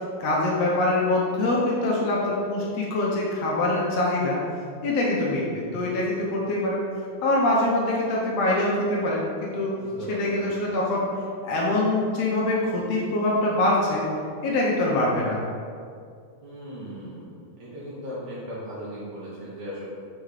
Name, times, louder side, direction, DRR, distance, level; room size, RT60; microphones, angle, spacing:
voice 1, 0.2-4.4 4.8-6.8 7.2-9.7 10.1-11.1 11.4-14.1 14.4-15.4, left 2 dB, 70° left, -4 dB, 1.7 m, -24 dB
voice 2, 9.8-10.5 16.4-19.9, equal, 75° right, -8 dB, 2.4 m, -37 dB
6.4 x 3.6 x 4.9 m, 2.3 s
omnidirectional pair, 3.6 m